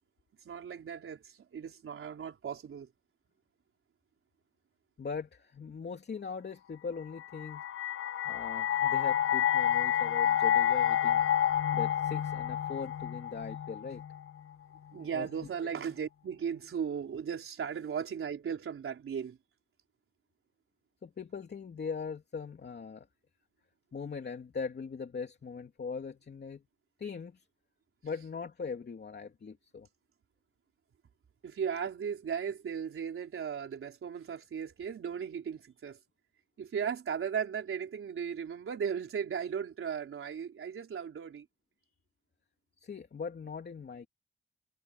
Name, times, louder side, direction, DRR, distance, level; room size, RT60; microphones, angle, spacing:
voice 1, 0.4-2.9 14.9-19.4 31.4-36.0 36.6-41.5, right 7 dB, 85° right, 4.3 m, -36 dB
voice 2, 5.0-7.6 8.2-11.2 11.7-14.0 15.1-15.3 21.0-23.1 23.9-26.6 27.0-27.5 28.0-29.9 42.8-44.1, left 5 dB, 55° left, 2.9 m, -40 dB
sound 1, 7.2-14.3, left 10 dB, 90° left, 0.9 m, -29 dB
wide cardioid pair, 110°, 21 cm